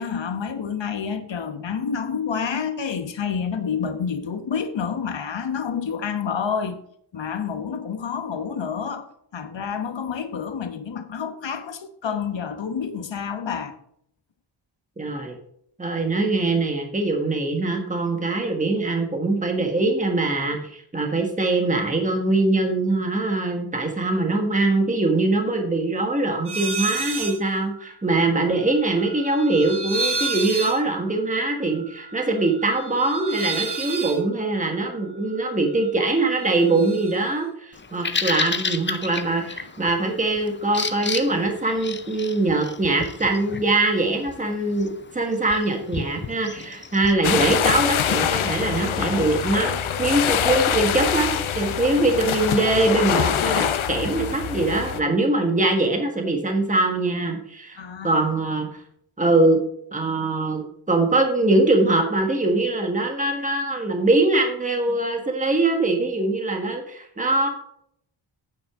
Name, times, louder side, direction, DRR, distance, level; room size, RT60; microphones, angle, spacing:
voice 1, 0.0-6.8 7.1-13.7 57.8-58.4, left 6 dB, 65° left, 1.2 m, -29 dB
voice 2, 15.0-15.4 15.8-57.8 58.0-58.7 59.2-59.6 59.9-67.5, right 2 dB, 15° right, 1.4 m, -22 dB
sound 1, 26.5-27.4 27.7-35.9 36.2-37.2, right 3 dB, 55° right, 1.7 m, -32 dB
Bird vocalization bird call bird song, 37.7-47.1, left 4 dB, 25° left, 0.5 m, -33 dB
sound 2, 47.2-55.0, left 8 dB, 90° left, 0.8 m, -24 dB
9.2 x 8.8 x 3.6 m
wide cardioid pair, 165°, 47 cm